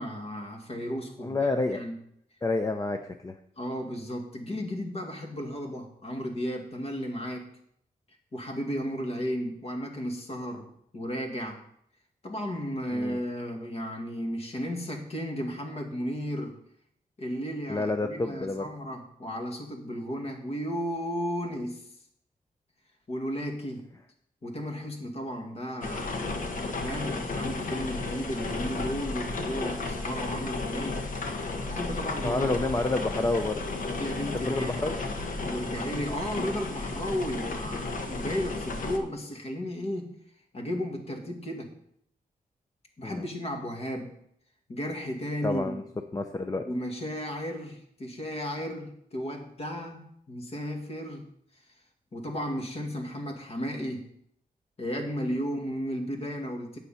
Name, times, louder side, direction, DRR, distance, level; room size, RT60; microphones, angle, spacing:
voice 1, 0.0-2.0 3.6-7.5 8.3-11.6 12.2-16.6 17.2-21.8 23.1-23.9 24.4-31.1 31.7-32.4 34.0-34.7 35.5-40.1 40.5-41.7 43.0-44.1 44.7-45.7 46.6-51.3 52.1-54.1 54.8-56.8, equal, 45° left, 2 dB, 2.1 m, -34 dB
voice 2, 1.2-1.8 2.4-3.4 12.9-13.2 17.7-18.6 24.8-24.9 32.2-33.8 34.3-35.0 43.0-43.2 45.4-45.8 46.1-46.7, left 2 dB, 25° left, 6 dB, 0.6 m, -29 dB
sound 1, 25.8-39.0, left 3 dB, 60° left, 1.3 m, -33 dB
9.8 x 8.2 x 5.7 m, 0.71 s
wide cardioid pair, 145°, 15 cm